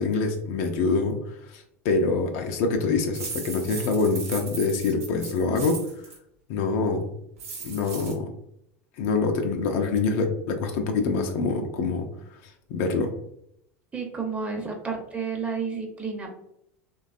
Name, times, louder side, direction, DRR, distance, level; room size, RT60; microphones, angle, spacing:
voice 1, 0.0-5.8 6.5-7.2 7.6-8.3 9.0-12.1 12.4-13.1, left 4 dB, 60° left, 4 dB, 0.4 m, -25 dB
sound 1, 3.1-6.2 7.4-8.1, right 5 dB, 75° right, 0.8 m, -37 dB
voice 2, 13.9-16.4, right 5 dB, 15° right, 1 dB, 0.7 m, -31 dB
3.1 x 2.2 x 2.5 m, 0.75 s
hypercardioid pair, 80°, 8 cm